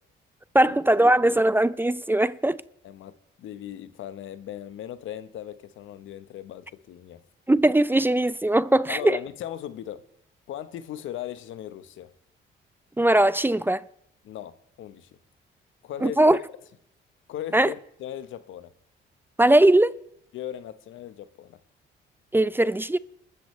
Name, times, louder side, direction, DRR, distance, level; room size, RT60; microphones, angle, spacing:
voice 1, 0.5-2.6 7.5-9.2 13.0-13.9 16.0-16.4 17.5-17.7 19.4-19.9 22.3-23.0, right 1 dB, 10° right, 0.5 m, -20 dB
voice 2, 2.8-7.2 8.9-10.0 10.5-12.1 14.2-15.1 15.8-16.4 17.3-18.7 20.3-21.6, left 11 dB, 80° left, 1.2 m, -38 dB
29.5 x 13.5 x 3.3 m
cardioid pair, 90°, 20 cm